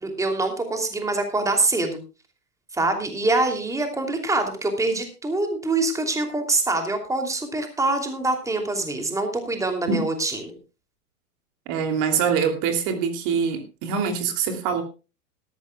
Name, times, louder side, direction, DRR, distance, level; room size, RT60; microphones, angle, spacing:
voice 1, 0.0-2.0 2.7-10.6, right 2 dB, 5° right, 5 dB, 2.9 m, -25 dB
voice 2, 11.7-14.8, right 6 dB, 40° right, 7 dB, 2.9 m, -24 dB
18.5 x 14.0 x 2.3 m, 0.32 s
hypercardioid pair, 110°, 45 cm